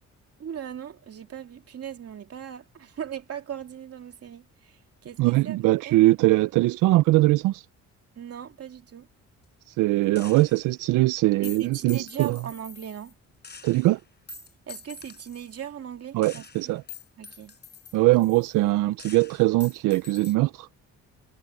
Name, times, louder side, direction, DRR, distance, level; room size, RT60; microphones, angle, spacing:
voice 1, 0.4-4.4 5.0-5.6 5.8-6.0 8.2-9.1 11.4-13.1 14.7-16.7 17.2-17.5, right 9 dB, 50° right, 2.7 m, -38 dB
voice 2, 5.2-7.7 9.7-12.4 13.6-14.0 16.1-16.8 17.9-20.7, right 18 dB, 90° right, 0.5 m, -21 dB
Gunshot gunfire, 10.2-10.8 11.4-13.1 13.4-15.7 16.2-18.7 19.0-20.4, left 6 dB, 35° left, 4.5 m, -46 dB
cardioid pair, 90°, 30 cm